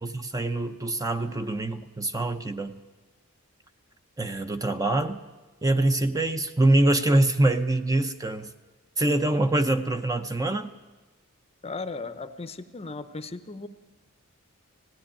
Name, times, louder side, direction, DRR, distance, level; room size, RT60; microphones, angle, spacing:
voice 1, 0.0-2.8 4.2-5.2 5.6-8.5 9.0-10.7, right 2 dB, 15° right, 8 dB, 0.7 m, -24 dB
voice 2, 11.6-13.7, left 3 dB, 30° left, 11 dB, 0.8 m, -36 dB
17.0 x 16.0 x 10.0 m, 1.2 s
head